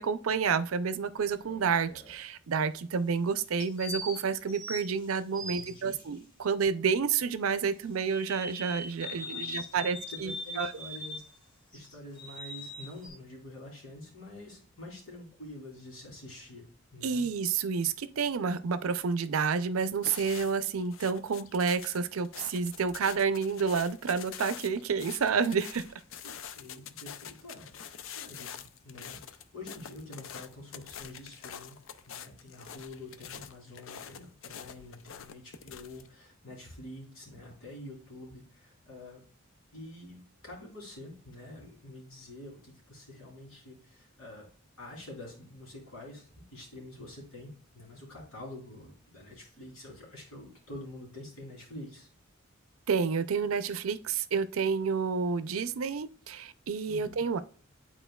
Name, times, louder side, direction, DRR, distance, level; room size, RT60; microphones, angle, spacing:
voice 1, 0.0-10.7 17.0-25.8 52.9-57.4, right 5 dB, 90° right, 0.5 m, -29 dB
sound 1, 1.2-2.1 3.6-6.0 8.1-11.3 11.7-13.1, left 1 dB, 20° left, 1.5 m, -41 dB
voice 2, 5.5-5.9 9.0-11.2 11.7-17.2 26.2-31.8 32.0-39.2 39.7-44.5 44.8-52.1 56.9-57.2, left 1 dB, 90° left, 3.1 m, -47 dB
sound 2, 19.9-36.1, left 8 dB, 65° left, 0.4 m, -46 dB
10.0 x 4.3 x 2.3 m
head